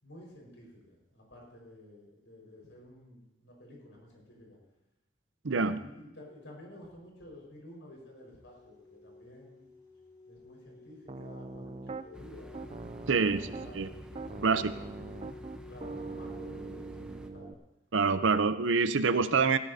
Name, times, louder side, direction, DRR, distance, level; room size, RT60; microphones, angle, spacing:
voice 1, 0.0-4.6 5.6-9.6 10.3-12.6 13.1-15.1 15.5-17.6, left 1 dB, 80° left, -2 dB, 5.1 m, -52 dB
voice 2, 5.4-5.8 13.1-13.4 13.7-13.9 14.4-14.7 17.9-19.6, right 4 dB, 85° right, 12 dB, 0.7 m, -26 dB
sound 1, 8.2-17.3, left 2 dB, 20° left, 5.9 m, -53 dB
Piano, 11.1-12.1 12.5-13.8 14.2-17.5, right 3 dB, 30° right, 0.4 m, -42 dB
sound 2, 12.1-17.3, equal, 5° right, 0.8 m, -49 dB
17.5 x 15.0 x 2.8 m, 0.90 s
head